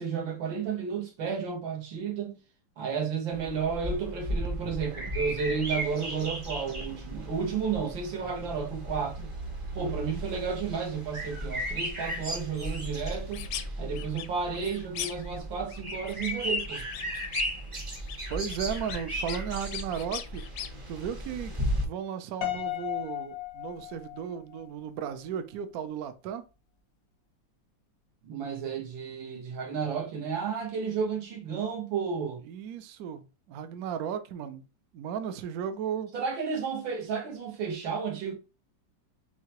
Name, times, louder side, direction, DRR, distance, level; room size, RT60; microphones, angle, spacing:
voice 1, 0.0-2.4 2.8-9.3 9.7-13.5 13.8-16.9 28.2-32.4 36.1-38.3, right 6 dB, 85° right, 2.0 m, -32 dB
sound 1, 3.3-21.9, equal, 30° right, 0.6 m, -35 dB
voice 2, 9.8-10.2 18.3-20.4 20.9-26.4 32.5-34.7 34.9-36.1, right 8 dB, 70° right, 0.9 m, -35 dB
sound 2, 13.1-13.7 13.9-15.4 15.7-17.6 17.9-20.7, left 10 dB, 75° left, 1.0 m, -40 dB
Piano, 22.4-24.6, left 15 dB, 90° left, 1.7 m, -35 dB
4.7 x 3.3 x 2.9 m
omnidirectional pair, 2.1 m